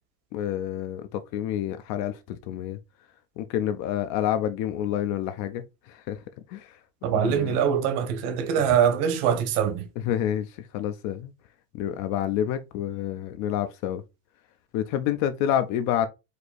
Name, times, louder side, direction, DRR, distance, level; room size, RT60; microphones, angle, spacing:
voice 1, 0.3-2.8 3.4-6.2 6.5-6.8 7.1-7.6 10.0-11.3 11.7-14.0 14.7-16.1, left 11 dB, 40° left, 0.4 m, -28 dB
voice 2, 7.0-9.9, right 8 dB, 55° right, 1.1 m, -23 dB
4.9 x 2.6 x 4.1 m
cardioid pair, 155°, 46 cm